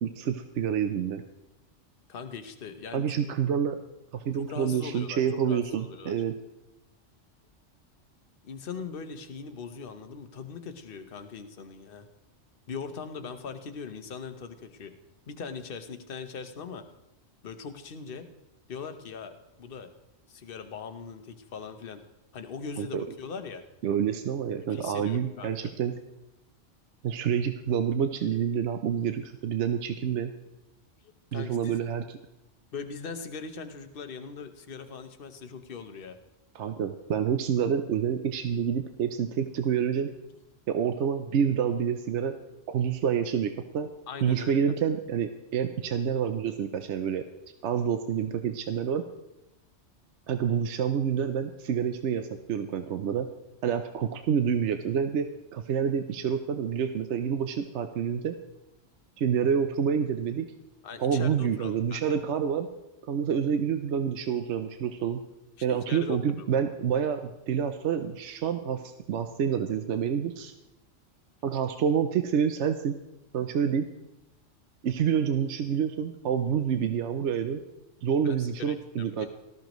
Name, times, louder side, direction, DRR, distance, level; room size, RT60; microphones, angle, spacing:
voice 1, 0.0-1.2 2.9-3.8 4.1-6.3 22.8-23.0 23.8-25.9 27.0-30.3 31.3-32.2 36.5-40.1 40.7-42.3 42.7-43.9 44.2-47.2 47.6-49.0 50.3-53.3 53.6-58.3 59.2-60.5 61.0-62.7 63.1-65.2 65.6-67.2 67.5-70.5 71.4-72.9 73.3-73.9 74.8-77.6 78.0-79.3, right 7 dB, 70° right, 8 dB, 0.9 m, -28 dB
voice 2, 2.1-3.3 4.3-6.1 8.4-12.1 12.7-14.9 15.3-16.8 17.4-18.3 18.7-19.9 20.3-22.0 22.3-23.6 24.7-25.7 31.3-31.8 32.7-36.2 44.1-44.5 60.8-62.2 65.7-66.2 78.2-78.4 78.7-79.3, left 5 dB, 50° left, 7 dB, 1.0 m, -40 dB
18.5 x 13.5 x 3.1 m, 0.94 s
omnidirectional pair, 1.3 m